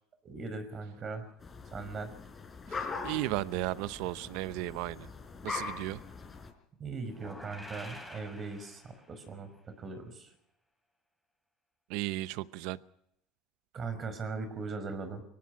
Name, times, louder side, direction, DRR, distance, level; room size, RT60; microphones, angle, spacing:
voice 1, 0.2-1.3 1.7-2.1 6.8-10.3 13.7-15.2, right 4 dB, 35° right, 10 dB, 5.6 m, -39 dB
sound 1, 1.4-6.5, left 4 dB, 25° left, 4.6 m, -41 dB
voice 2, 2.7-5.1 5.4-6.0 11.9-12.8, right 18 dB, 75° right, 16 dB, 0.8 m, -35 dB
sound 2, 7.1-9.3, left 1 dB, ahead, 6.8 m, -48 dB
24.0 x 18.0 x 6.0 m, 0.78 s
supercardioid pair, 105°, 0 cm